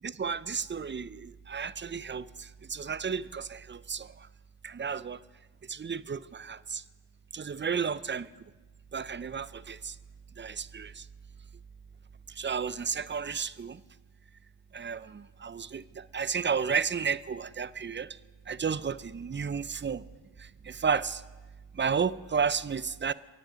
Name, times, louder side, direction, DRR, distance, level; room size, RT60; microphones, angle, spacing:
voice 1, 0.0-4.1 4.6-5.2 5.7-6.8 7.3-8.3 8.9-9.9 10.4-11.0 12.4-13.8 14.7-18.2 18.5-20.0 20.4-21.2 21.7-23.1, right 6 dB, 25° right, 17 dB, 0.5 m, -32 dB
23.0 x 9.1 x 5.1 m, 1.3 s
cardioid pair, 45°, 42 cm